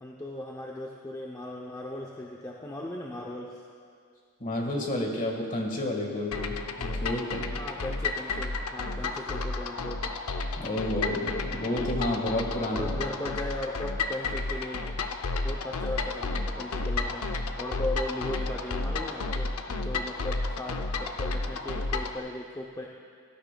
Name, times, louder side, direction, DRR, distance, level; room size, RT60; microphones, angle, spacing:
voice 1, 0.0-3.6 7.5-10.0 12.8-14.9 15.4-17.3 17.6-22.9, left 1 dB, 15° left, -2 dB, 0.6 m, -37 dB
voice 2, 4.4-7.5 10.6-13.0, left 1 dB, 35° left, 0 dB, 1.6 m, -30 dB
sound 1, 6.3-22.2, left 3 dB, 75° left, 0.6 m, -32 dB
17.5 x 12.5 x 2.3 m, 2.2 s
head